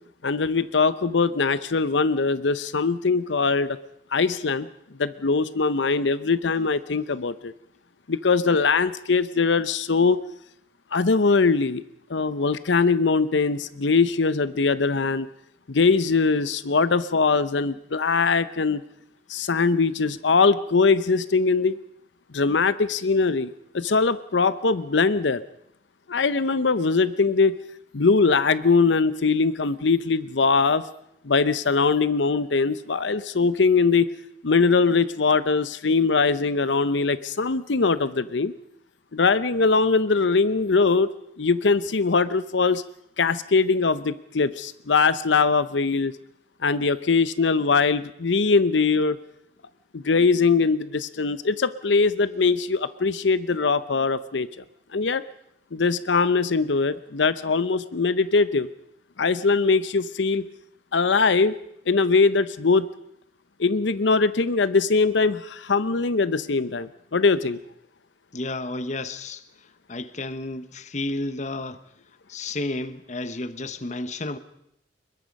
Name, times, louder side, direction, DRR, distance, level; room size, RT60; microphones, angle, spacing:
voice 1, 0.2-3.8 4.1-4.7 5.0-7.5 8.1-10.2 10.9-11.8 12.1-15.3 15.7-18.8 19.3-21.8 22.3-23.5 23.7-25.4 26.1-27.6 27.9-30.8 31.2-34.1 34.4-38.5 39.1-41.1 41.4-42.8 43.2-46.1 46.6-49.2 49.9-54.5 54.9-55.2 55.7-58.7 59.2-60.4 60.9-61.5 61.9-62.9 63.6-67.6, left 4 dB, 90° left, 0.8 m, -21 dB
voice 2, 68.3-69.4 69.9-71.8 72.3-74.4, left 2 dB, 40° left, 1.1 m, -31 dB
23.0 x 21.5 x 5.3 m
head